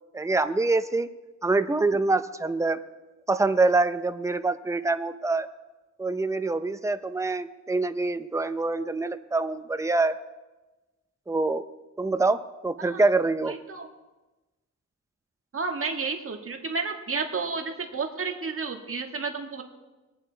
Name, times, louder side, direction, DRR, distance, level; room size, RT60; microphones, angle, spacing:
voice 1, 0.1-1.1 1.4-2.8 3.3-5.5 6.0-10.2 11.3-11.6 12.0-13.6, right 3 dB, 10° right, 11 dB, 0.7 m, -25 dB
voice 2, 13.5-13.9 15.5-19.6, right 4 dB, 45° right, 4 dB, 1.8 m, -31 dB
22.0 x 8.8 x 4.0 m, 1.1 s
cardioid pair, 65°, 31 cm